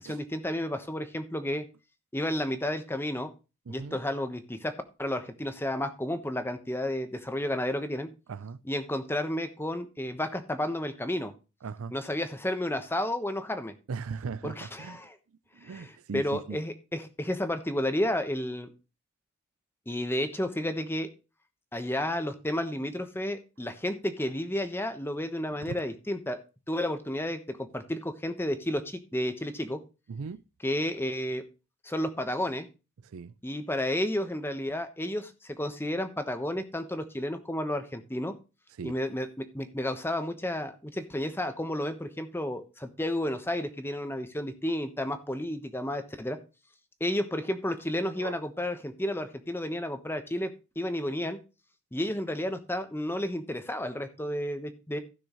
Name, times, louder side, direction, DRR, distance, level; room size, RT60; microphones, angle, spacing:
voice 1, 0.0-1.6 2.1-3.3 3.7-8.1 8.6-11.3 11.9-13.7 14.4-15.2 15.6-18.7 19.9-21.1 21.7-26.4 26.7-29.8 30.6-31.4 31.8-32.7 33.4-38.3 38.8-46.4 47.0-51.4 51.9-55.0, left 1 dB, 10° left, 1.1 m, -32 dB
voice 2, 3.7-4.0 8.3-8.6 11.6-12.0 13.9-15.0 15.5-16.6 25.6-25.8 30.1-30.4 33.0-33.3 38.8-39.0 48.2-48.4, right 5 dB, 65° right, 0.4 m, -38 dB
15.5 x 6.2 x 3.0 m
head